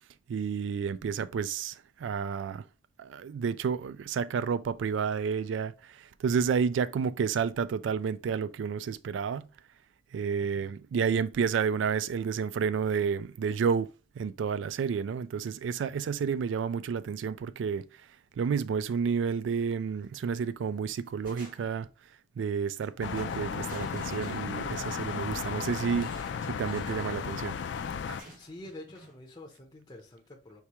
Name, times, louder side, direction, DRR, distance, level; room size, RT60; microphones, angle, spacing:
voice 1, 0.3-2.6 3.0-9.5 10.1-17.8 18.4-21.9 22.4-26.1 26.5-27.6 28.1-28.2, right 6 dB, 85° right, 0.3 m, -30 dB
voice 2, 10.4-10.7 28.4-30.6, left 1 dB, 20° left, 0.6 m, -47 dB
sound 1, 20.0-20.4 20.8-21.9 22.7-22.9 23.1-25.0 25.9-27.3 28.2-29.2, equal, 50° right, 1.9 m, -52 dB
sound 2, 23.0-28.2, left 6 dB, 75° left, 0.3 m, -35 dB
4.7 x 3.3 x 2.9 m
head